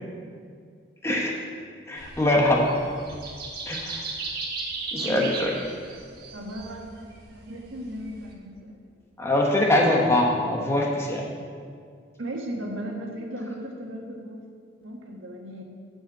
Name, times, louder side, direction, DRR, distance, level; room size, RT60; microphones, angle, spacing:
voice 1, 1.0-1.3 1.9-2.7 3.7-4.0 4.9-5.5 9.2-11.2, left 1 dB, 15° left, -1 dB, 1.0 m, -23 dB
sound 1, 2.0-8.3, right 3 dB, 50° right, 1.4 m, -36 dB
voice 2, 5.0-5.4 6.3-8.8 12.2-14.4 14.8-15.6, right 1 dB, 75° right, 0 dB, 1.5 m, -36 dB
10.0 x 5.3 x 7.2 m, 2.1 s
head